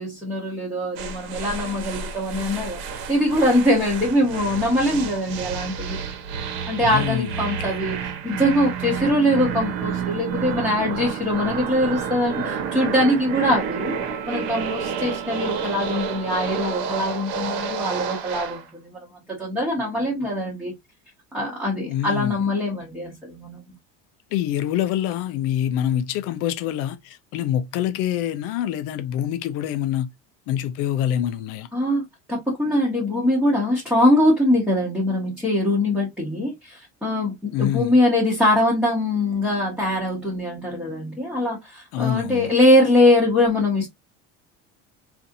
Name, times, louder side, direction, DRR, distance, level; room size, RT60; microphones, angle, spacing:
voice 1, 0.0-6.0 6.7-7.9 8.2-14.0 14.3-19.0 19.4-20.7 21.3-23.6 31.7-32.0 32.3-43.9, left 1 dB, 5° right, 0.8 m, -22 dB
sound 1, 1.0-18.6, right 6 dB, 70° right, 1.1 m, -30 dB
voice 2, 6.8-7.8 21.9-22.4 24.3-30.1 30.5-31.7 37.5-38.0 41.9-42.5, left 11 dB, 50° left, 0.5 m, -25 dB
sound 2, 9.0-17.2, right 10 dB, 55° right, 0.5 m, -36 dB
4.0 x 2.5 x 2.6 m
cardioid pair, 180°, 30 cm